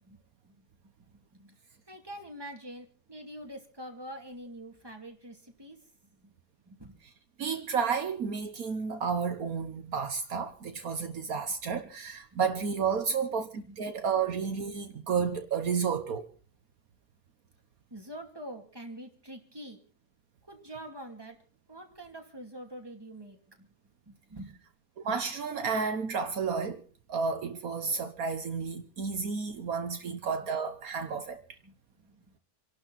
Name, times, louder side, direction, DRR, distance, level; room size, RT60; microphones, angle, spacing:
voice 1, 1.1-1.6 1.9-6.3 6.7-7.0 12.3-12.4 13.6-13.9 17.9-19.8 20.5-21.4 21.7-23.7 24.1-24.6 30.0-30.2 31.6-32.2, right 1 dB, 15° right, 2.6 m, -46 dB
voice 2, 7.4-16.3 25.0-26.8 27.1-31.4, right 6 dB, 70° right, 1.5 m, -31 dB
28.0 x 12.0 x 4.1 m
omnidirectional pair, 1.6 m